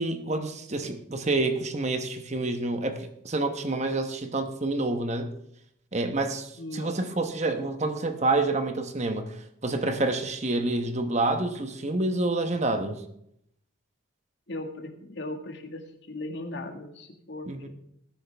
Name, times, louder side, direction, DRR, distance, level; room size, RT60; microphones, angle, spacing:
voice 1, 0.0-5.3 5.9-13.0 17.5-17.7, right 2 dB, 35° right, 7 dB, 1.0 m, -28 dB
voice 2, 6.6-7.0 14.5-17.7, left 2 dB, 55° left, 4 dB, 1.8 m, -38 dB
19.5 x 10.0 x 3.4 m, 0.75 s
head